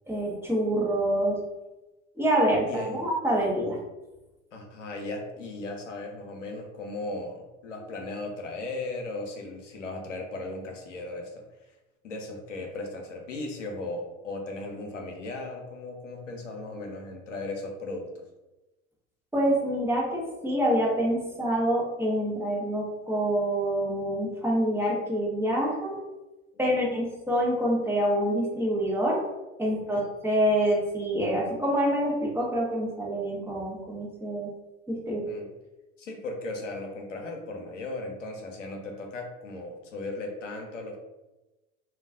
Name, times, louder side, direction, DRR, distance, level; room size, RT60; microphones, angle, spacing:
voice 1, 0.1-1.4 2.2-3.8 19.3-26.0 26.6-29.2 29.6-34.5 34.9-35.2, right 1 dB, 5° right, -4 dB, 0.9 m, -26 dB
voice 2, 2.7-3.1 4.5-11.7 12.0-18.1 29.8-30.0 35.1-35.5 36.0-41.0, left 2 dB, 90° left, 1 dB, 0.6 m, -37 dB
2.3 x 2.3 x 3.5 m, 1.0 s
hypercardioid pair, 80°, 36 cm